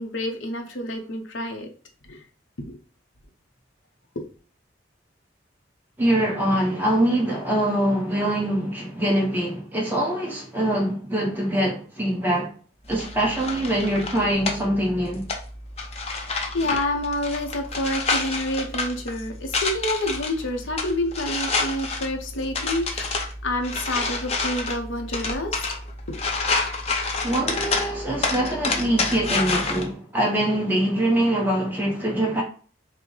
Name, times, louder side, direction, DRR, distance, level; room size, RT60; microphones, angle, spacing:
voice 1, 0.0-1.7 2.0-2.2 2.6-2.8 4.2-4.3 16.5-25.6 26.1-26.2, left 1 dB, 80° left, 0.8 m, -28 dB
voice 2, 6.0-12.5 12.9-15.3 27.2-32.4, right 1 dB, 10° right, 1.0 m, -23 dB
sound 1, 12.9-29.8, left 3 dB, 30° left, 0.6 m, -29 dB
5.9 x 2.1 x 3.2 m
head